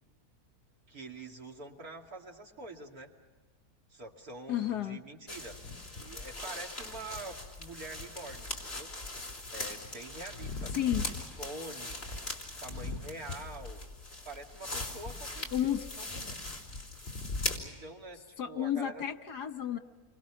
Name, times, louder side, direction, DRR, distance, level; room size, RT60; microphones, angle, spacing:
voice 1, 0.9-3.1 3.9-5.6 5.9-8.9 9.5-12.1 12.6-14.0 14.2-15.5 15.9-16.5 17.6-19.0, right 2 dB, 65° right, 1 dB, 2.8 m, -46 dB
voice 2, 4.5-5.0 10.7-11.0 15.5-15.9 18.4-19.8, left 11 dB, 80° left, 7 dB, 1.9 m, -32 dB
sound 1, 5.3-17.6, left 2 dB, 40° left, 3.8 m, -40 dB
29.5 x 24.5 x 6.1 m, 1.4 s
omnidirectional pair, 1.7 m